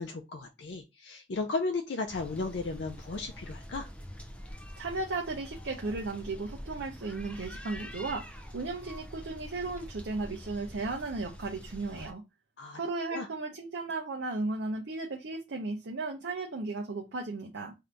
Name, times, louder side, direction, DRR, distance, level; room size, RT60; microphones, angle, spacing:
voice 1, 0.0-3.9 12.6-12.8 13.1-13.3, left 3 dB, 90° left, 0.5 m, -35 dB
sound 1, 2.1-12.1, equal, 5° left, 0.4 m, -45 dB
voice 2, 4.8-12.2 12.7-17.7, right 3 dB, 85° right, 0.6 m, -35 dB
2.7 x 2.5 x 3.3 m
head